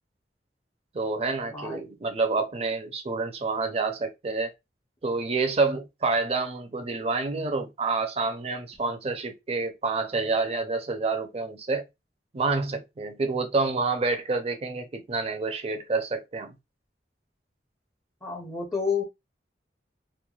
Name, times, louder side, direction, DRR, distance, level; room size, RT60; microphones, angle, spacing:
voice 1, 0.9-4.5 5.0-11.8 12.3-16.6, right 3 dB, 35° right, 0.5 m, -28 dB
voice 2, 18.2-19.0, left 5 dB, 20° left, 0.5 m, -29 dB
3.1 x 2.1 x 2.2 m
head